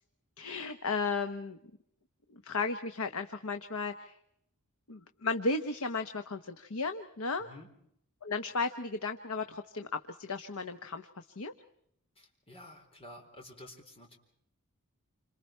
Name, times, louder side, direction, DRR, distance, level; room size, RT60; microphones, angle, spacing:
voice 1, 0.4-1.6 2.3-4.1 4.9-7.5 8.2-11.5, left 3 dB, 80° left, 8 dB, 1.1 m, -35 dB
voice 2, 12.2-14.2, left 1 dB, 25° left, 2 dB, 4.0 m, -51 dB
28.5 x 27.0 x 4.5 m, 0.73 s
head